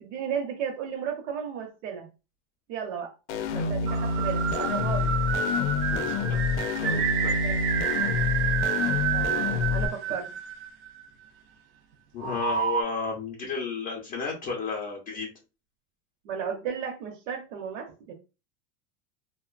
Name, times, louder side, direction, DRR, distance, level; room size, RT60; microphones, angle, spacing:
voice 1, 0.0-2.1 2.7-3.1 3.5-5.1 7.4-7.6 9.1-10.3 16.2-18.1, right 7 dB, 75° right, 1 dB, 0.8 m, -34 dB
sound 1, 3.3-9.9, left 5 dB, 70° left, 0.5 m, -27 dB
sound 2, 3.9-11.1 12.2-12.8, right 8 dB, 55° right, 0.5 m, -29 dB
voice 2, 5.8-7.3 12.1-15.3, left 5 dB, 25° left, -1 dB, 0.5 m, -33 dB
2.8 x 2.1 x 2.4 m, 0.30 s
supercardioid pair, 150°, 37 cm